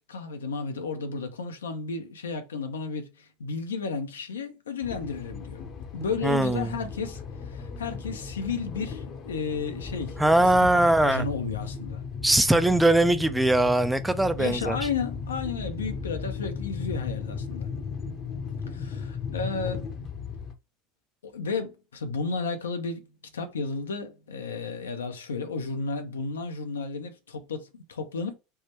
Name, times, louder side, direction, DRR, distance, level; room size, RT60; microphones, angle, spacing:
voice 1, 0.1-5.6 5.9-12.0 14.4-17.7 18.7-19.9 21.2-23.1 23.3-28.3, left 4 dB, 85° left, 0.6 m, -33 dB
sound 1, 4.8-20.5, left 5 dB, 45° left, 0.7 m, -36 dB
voice 2, 6.2-6.7 10.2-11.3 12.2-14.8, right 1 dB, 5° right, 0.4 m, -21 dB
3.4 x 2.1 x 3.0 m
hypercardioid pair, 85°, 0 cm